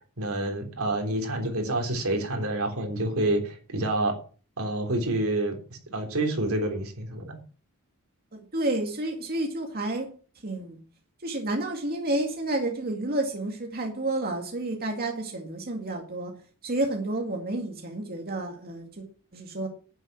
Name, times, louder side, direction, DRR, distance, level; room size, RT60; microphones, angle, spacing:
voice 1, 0.2-4.1 4.6-7.4, right 1 dB, 75° right, 3 dB, 3.4 m, -28 dB
voice 2, 8.5-10.1 10.4-10.8 11.2-16.3 16.6-19.0 19.3-19.7, right 2 dB, 45° right, 1 dB, 2.2 m, -30 dB
10.5 x 9.5 x 6.0 m, 0.39 s
head